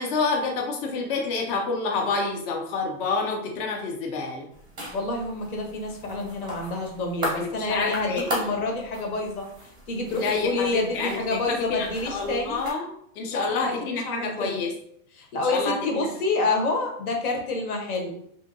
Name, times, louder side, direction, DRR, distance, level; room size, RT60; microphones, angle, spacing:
voice 1, 0.0-4.5 7.4-8.3 10.1-12.9 13.2-14.7 15.5-16.1, left 4 dB, 40° left, 0 dB, 0.4 m, -28 dB
sound 1, 4.5-12.7, equal, 10° right, 0.5 m, -37 dB
voice 2, 4.9-9.5 9.9-12.6 13.3-14.6 15.2-18.2, left 3 dB, 80° left, 2 dB, 1.0 m, -28 dB
2.7 x 2.6 x 2.5 m, 0.69 s
supercardioid pair, 155°, 43 cm